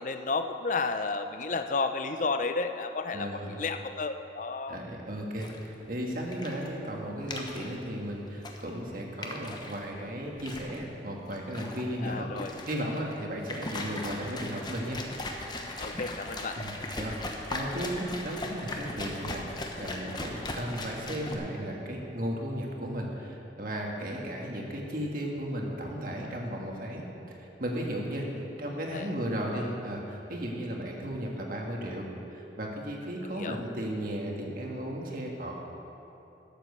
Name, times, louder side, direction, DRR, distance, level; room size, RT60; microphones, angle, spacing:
voice 1, 0.0-4.8 12.0-12.5 15.8-16.6 28.2-29.1 29.5-29.7 33.2-33.6, left 4 dB, 45° left, 8 dB, 0.5 m, -32 dB
voice 2, 3.1-3.6 4.7-15.0 16.6-35.5, equal, 50° right, 0 dB, 1.6 m, -35 dB
sound 1, 5.4-21.4, left 2 dB, 25° left, 0.9 m, -39 dB
12.0 x 7.5 x 6.8 m, 3.0 s
head